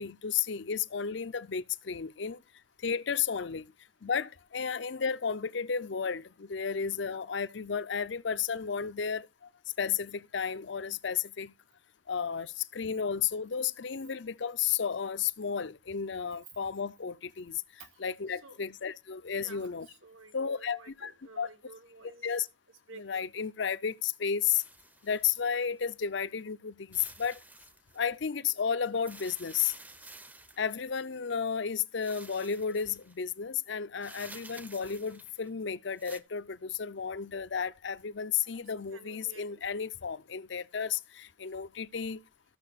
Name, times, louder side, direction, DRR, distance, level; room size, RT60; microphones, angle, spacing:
voice 1, 0.0-2.4 2.8-3.7 4.0-9.5 9.8-11.5 12.1-17.6 18.0-19.9 20.3-21.1 21.4-21.5 22.2-22.5 23.0-24.6 25.0-27.4 27.9-29.7 30.6-42.2, left 7 dB, 60° left, 0.6 m, -33 dB
voice 2, 17.8-18.6 19.4-22.3 22.9-23.3 38.6-39.6, right 3 dB, 85° right, 1.9 m, -53 dB
sound 1, 24.5-25.8 26.9-28.0 28.9-30.9 32.0-33.2 34.0-35.5 35.9-36.2, right 2 dB, 10° right, 0.6 m, -51 dB
14.0 x 6.8 x 4.1 m
head